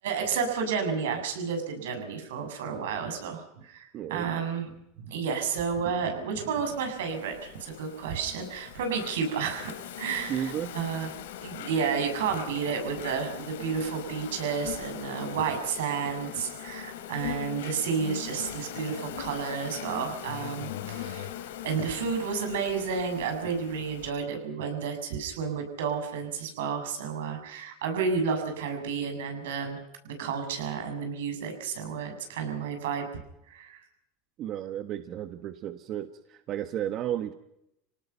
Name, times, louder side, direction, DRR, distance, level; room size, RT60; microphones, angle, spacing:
voice 1, 0.0-4.7 5.0-11.1 11.4-21.3 21.6-29.8 30.0-33.1 33.5-33.8, right 6 dB, 85° right, 5 dB, 6.8 m, -31 dB
voice 2, 3.9-4.3 10.3-10.7 34.4-37.3, right 10 dB, 50° right, 9 dB, 1.3 m, -33 dB
Insect, 6.7-24.1, left 11 dB, 85° left, 2.8 m, -41 dB
27.0 x 18.5 x 5.8 m, 0.82 s
supercardioid pair, 105°, 0 cm